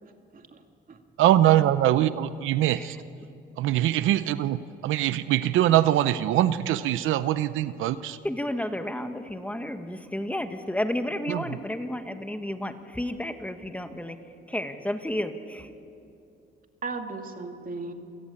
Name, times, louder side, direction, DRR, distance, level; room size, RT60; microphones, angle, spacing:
voice 1, 0.0-0.6 0.9-1.0 16.8-17.9, right 3 dB, 45° right, 5 dB, 2.4 m, -37 dB
voice 2, 1.2-3.0 3.6-8.2 11.3-11.6, right 13 dB, 85° right, 13 dB, 0.7 m, -23 dB
voice 3, 8.2-14.2 14.5-15.7, left 1 dB, 5° left, 7 dB, 1.6 m, -32 dB
28.5 x 17.5 x 8.6 m, 2.6 s
cardioid pair, 90°, 20 cm